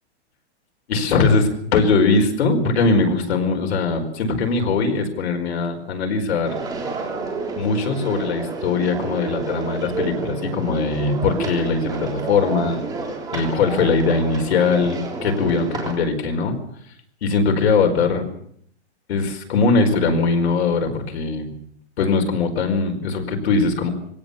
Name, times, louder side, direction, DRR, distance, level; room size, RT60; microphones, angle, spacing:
voice 1, 0.9-6.6 7.6-12.8 13.3-16.6 17.2-18.3 19.1-21.6 22.0-23.9, left 4 dB, 65° left, 4 dB, 4.8 m, -21 dB
sound 1, 6.4-15.9, right 4 dB, 10° right, 3.3 m, -30 dB
22.5 x 17.5 x 7.1 m, 0.68 s
hypercardioid pair, 165°, 34 cm